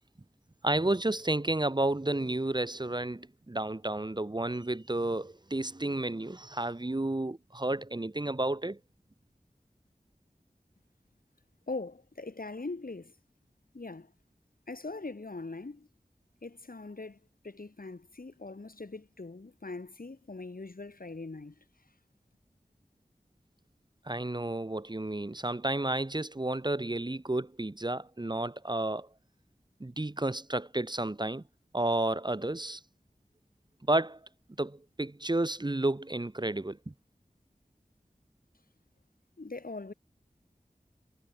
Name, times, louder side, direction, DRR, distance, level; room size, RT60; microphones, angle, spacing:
voice 1, 0.6-8.8 24.1-29.1 29.8-31.4 31.7-32.8 33.9-34.2 34.6-36.9, right 2 dB, 30° right, 1.0 m, -31 dB
voice 2, 11.7-13.1 13.7-14.1 14.7-15.9 16.4-17.2 17.4-21.5 39.4-39.9, left 3 dB, 80° left, 4.3 m, -41 dB
wide cardioid pair, 45°, 15 cm